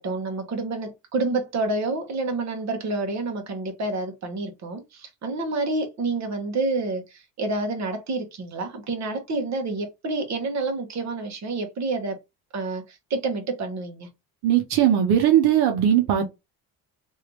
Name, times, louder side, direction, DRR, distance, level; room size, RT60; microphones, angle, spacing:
voice 1, 0.0-12.2 12.5-14.1, right 3 dB, 45° right, 1.2 m, -28 dB
voice 2, 14.4-16.3, right 10 dB, 80° right, 1.0 m, -19 dB
3.1 x 2.8 x 3.0 m
cardioid pair, 105°, 38 cm